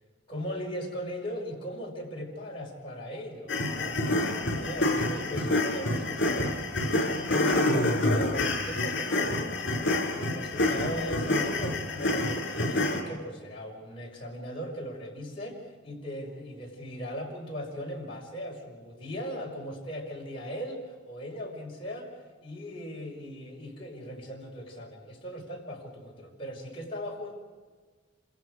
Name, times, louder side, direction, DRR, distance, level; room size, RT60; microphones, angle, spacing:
voice 1, 0.3-3.5 3.8-6.6 7.0-9.5 10.1-27.3, equal, 30° left, -2 dB, 5.4 m, -38 dB
sound 1, 3.5-13.0, left 2 dB, 65° left, 5.1 m, -27 dB
27.5 x 27.0 x 4.9 m, 1.4 s
head